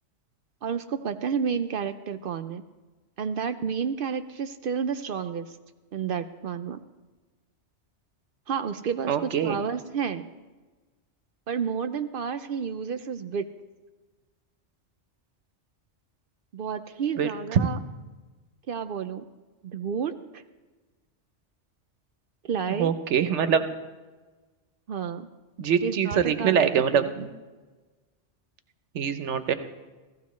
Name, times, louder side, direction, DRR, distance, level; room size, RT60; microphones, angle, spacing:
voice 1, 0.6-2.6 3.2-5.6 5.9-6.8 8.5-10.3 11.5-13.5 16.5-17.8 18.7-19.2 19.6-20.4 22.4-22.9 24.9-25.3 25.8-26.7 26.9-27.1, right 7 dB, 60° right, 11 dB, 0.6 m, -30 dB
voice 2, 9.0-9.6 17.2-17.7 22.8-23.7 25.6-27.3 28.9-29.5, right 7 dB, 80° right, 10 dB, 1.1 m, -24 dB
16.0 x 14.5 x 3.1 m, 1.3 s
omnidirectional pair, 1.2 m